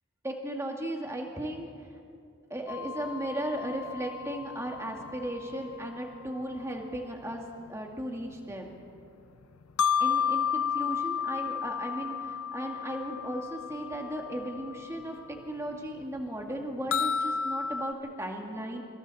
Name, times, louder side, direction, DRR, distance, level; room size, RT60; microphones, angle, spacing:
voice 1, 0.2-1.7 2.5-7.4 7.7-8.7 10.0-18.8, right 1 dB, 15° right, 1 dB, 2.0 m, -36 dB
sound 1, 2.7-6.4 7.3-7.4 9.6-15.2 15.4-15.5 16.0-16.1 16.9-17.9, left 7 dB, 85° left, 0.6 m, -32 dB
25.5 x 25.0 x 4.2 m, 2.3 s
head